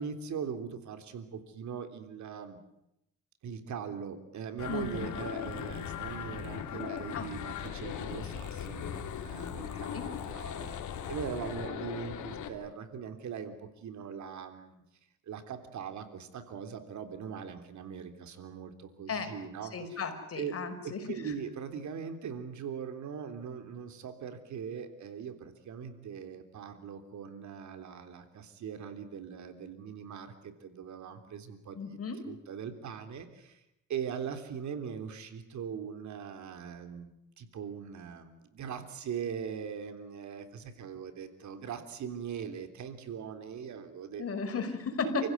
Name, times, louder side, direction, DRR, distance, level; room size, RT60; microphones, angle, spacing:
voice 1, 0.0-2.6 3.4-14.8 15.3-20.0 20.4-20.5 20.8-32.0 32.3-33.6 33.9-44.2 45.2-45.3, right 7 dB, 70° right, 8 dB, 3.4 m, -41 dB
sound 1, 4.6-12.5, left 9 dB, 75° left, 3.1 m, -38 dB
voice 2, 4.7-5.1 7.1-7.3 9.9-10.1 19.1-19.3 19.7-21.3 31.7-32.2 44.2-45.3, left 4 dB, 50° left, 6 dB, 5.4 m, -35 dB
29.5 x 16.0 x 9.7 m, 0.83 s
cardioid pair, 90°, 30 cm